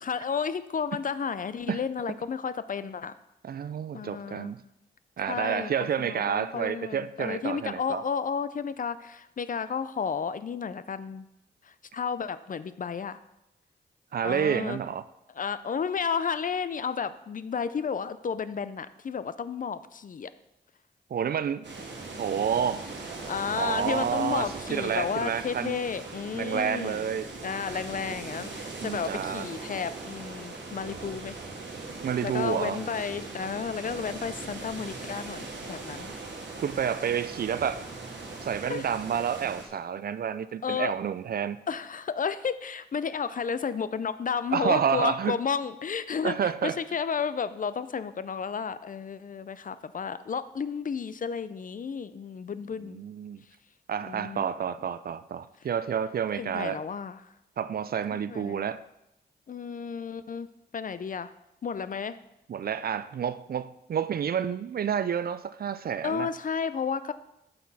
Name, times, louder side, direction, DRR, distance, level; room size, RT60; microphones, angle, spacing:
voice 1, 0.0-3.1 3.9-4.5 5.3-11.3 11.6-13.2 14.2-14.8 15.3-20.3 23.2-27.1 27.4-31.4 32.2-36.1 38.7-38.8 40.6-40.9 41.7-53.0 54.0-54.4 56.4-57.2 58.1-58.7 59.5-60.5 60.7-61.3 61.6-62.2 66.0-67.1, left 6 dB, 50° left, 0.4 m, -32 dB
voice 2, 3.4-4.6 5.2-8.0 14.1-15.0 21.1-21.6 22.2-22.9 23.6-25.8 26.3-27.3 28.8-29.5 32.0-32.8 36.6-37.8 38.4-41.6 44.5-45.4 46.2-46.8 52.8-53.4 53.9-56.8 57.6-58.8 62.5-66.3, right 8 dB, 55° right, 0.4 m, -29 dB
sound 1, 21.6-39.7, right 3 dB, 80° right, 1.3 m, -40 dB
6.6 x 5.9 x 4.1 m
cardioid pair, 55°, 18 cm